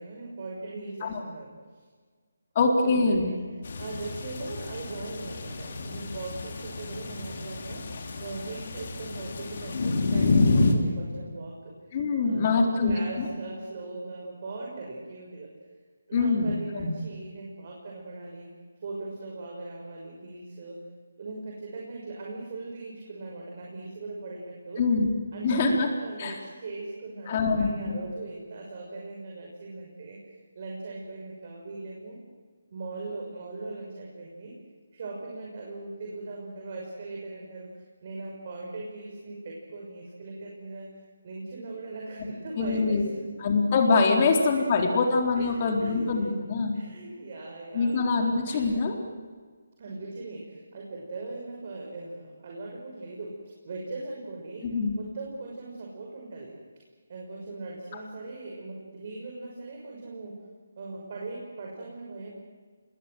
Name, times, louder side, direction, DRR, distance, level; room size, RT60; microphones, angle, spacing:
voice 1, 0.0-1.8 2.8-3.4 3.8-11.7 12.2-15.5 16.1-18.5 18.8-20.8 21.2-24.8 25.3-32.2 32.7-34.6 34.9-40.9 41.2-43.3 44.2-44.7 45.4-46.3 46.7-48.7 49.8-53.4 53.6-56.5 57.1-60.4 60.8-62.3, right 3 dB, 45° right, -1 dB, 6.0 m, -39 dB
voice 2, 2.6-3.3 11.9-13.3 16.1-16.9 24.8-25.2 25.4-25.9 26.2-26.4 27.3-28.0 42.6-43.1 43.4-46.8 47.7-49.0 54.6-55.0, left 4 dB, 35° left, 2 dB, 4.0 m, -24 dB
sound 1, 3.6-10.7, left 3 dB, 50° left, 3.9 m, -29 dB
27.5 x 21.0 x 7.9 m, 1.5 s
figure-of-eight pair, 150°, 0 cm